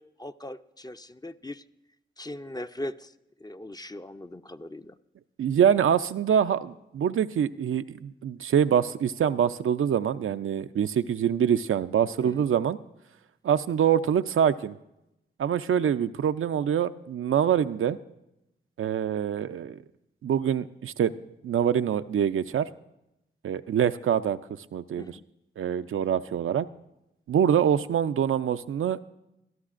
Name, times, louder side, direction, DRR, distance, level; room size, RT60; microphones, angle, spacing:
voice 1, 0.0-1.6 2.2-3.1 3.4-4.9 12.2-12.5 25.0-25.2, left 1 dB, 20° left, 10 dB, 0.5 m, -39 dB
voice 2, 5.4-12.8 13.4-14.8 15.4-18.0 18.8-19.8 20.2-21.1 21.4-22.7 23.4-24.4 24.7-25.2 25.6-26.7 27.3-29.0, right 8 dB, 75° right, 11 dB, 0.4 m, -25 dB
21.5 x 13.0 x 2.5 m, 0.87 s
cardioid pair, 40°, 21 cm